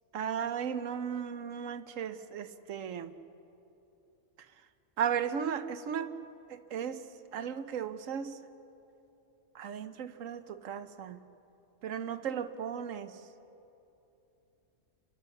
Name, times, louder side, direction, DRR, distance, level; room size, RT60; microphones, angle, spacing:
voice 1, 0.1-3.1 5.0-6.1 6.5-7.0 7.3-8.4 9.5-11.2 11.8-13.1, right 8 dB, 85° right, 11 dB, 1.2 m, -35 dB
29.5 x 12.5 x 7.1 m, 2.9 s
omnidirectional pair, 1.3 m